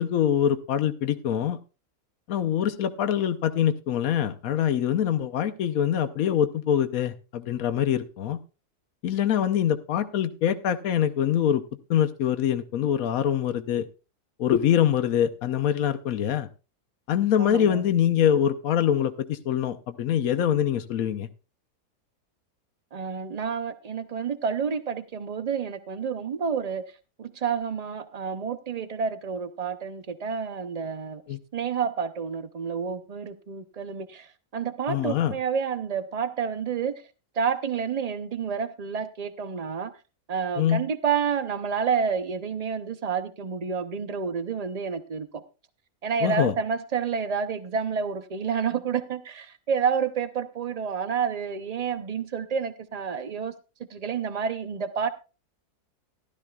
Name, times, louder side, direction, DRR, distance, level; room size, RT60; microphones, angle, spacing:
voice 1, 0.0-1.6 2.3-8.4 9.0-11.6 11.9-13.8 14.4-16.5 17.1-21.3 31.3-31.4 34.9-35.3 40.6-40.8 46.2-46.5, left 9 dB, 65° left, 9 dB, 1.1 m, -24 dB
voice 2, 17.4-17.8 22.9-26.8 27.2-31.2 31.5-36.9 37.4-39.9 40.3-45.4 46.0-53.6 53.9-55.1, right 6 dB, 65° right, 11 dB, 0.4 m, -29 dB
15.0 x 12.0 x 2.3 m, 0.32 s
omnidirectional pair, 1.7 m